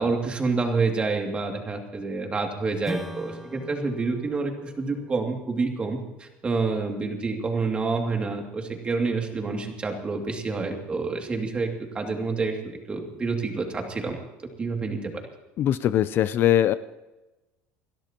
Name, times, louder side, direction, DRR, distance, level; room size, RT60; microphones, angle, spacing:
voice 1, 0.0-11.7 11.9-14.2 14.6-15.1, right 4 dB, 20° right, 2 dB, 2.6 m, -28 dB
Strum, 2.8-7.8, equal, 5° right, 1.1 m, -42 dB
voice 2, 15.6-16.7, left 11 dB, 45° left, 14 dB, 0.5 m, -21 dB
29.5 x 12.0 x 3.0 m, 1.0 s
cardioid pair, 130°, 5 cm